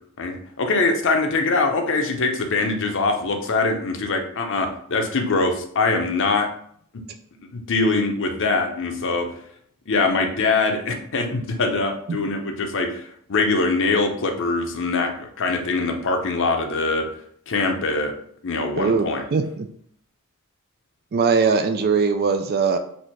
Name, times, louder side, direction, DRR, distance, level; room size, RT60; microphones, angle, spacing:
voice 1, 0.2-6.5 6.9-7.0 7.5-9.3 9.9-17.1 17.5-18.1 18.4-19.2, left 3 dB, 60° left, 4 dB, 0.8 m, -23 dB
voice 2, 18.8-19.7 21.1-22.8, right 5 dB, 45° right, 7 dB, 0.4 m, -20 dB
4.3 x 2.7 x 4.5 m, 0.64 s
head